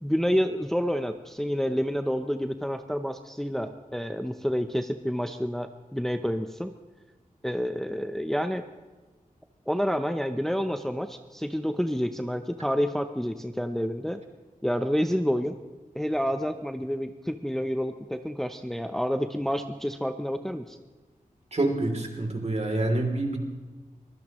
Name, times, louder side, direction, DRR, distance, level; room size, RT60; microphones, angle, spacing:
voice 1, 0.0-6.7 7.4-8.7 9.7-14.2 14.6-15.5 15.9-20.8, equal, 5° left, 7 dB, 0.7 m, -29 dB
voice 2, 21.5-23.4, right 2 dB, 50° right, 3 dB, 3.1 m, -27 dB
23.5 x 16.0 x 3.1 m, 1.3 s
wide cardioid pair, 80°, 14 cm